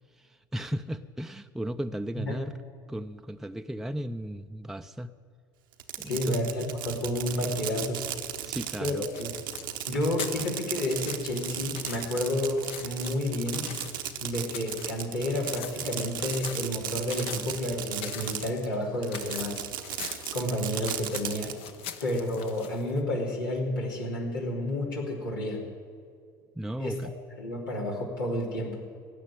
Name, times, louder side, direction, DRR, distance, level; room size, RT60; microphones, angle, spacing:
voice 1, 0.2-2.6 2.9-5.1 6.0-6.4 8.4-9.1 26.6-27.1, right 1 dB, 5° right, 7 dB, 0.5 m, -35 dB
Fireworks, 5.7-18.7 19.0-21.5, right 11 dB, 80° right, 1.0 m, -36 dB
voice 2, 6.0-8.0 8.8-9.4 9.9-13.7 14.2-19.7 20.3-21.5 22.0-25.6 26.8-27.0 27.4-28.8, left 1 dB, 85° left, -3 dB, 3.3 m, -30 dB
sound 1, 9.1-23.0, left 8 dB, 60° left, 1.2 m, -42 dB
17.0 x 6.6 x 9.9 m, 2.2 s
hypercardioid pair, 70°, 11 cm